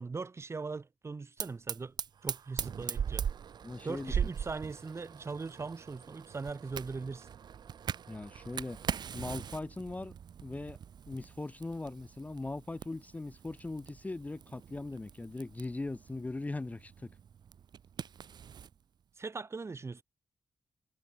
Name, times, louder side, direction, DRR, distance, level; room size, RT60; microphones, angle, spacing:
voice 1, 0.0-1.9 2.2-3.2 3.8-7.3 19.2-20.0, right 4 dB, 35° right, 1.5 m, -40 dB
Fire, 1.4-18.7, right 8 dB, 70° right, 0.6 m, -41 dB
voice 2, 3.6-4.2 8.1-8.8 9.1-10.1 10.4-10.8 11.1-17.1, left 2 dB, 20° left, 0.7 m, -40 dB
wide cardioid pair, 115°, 8 cm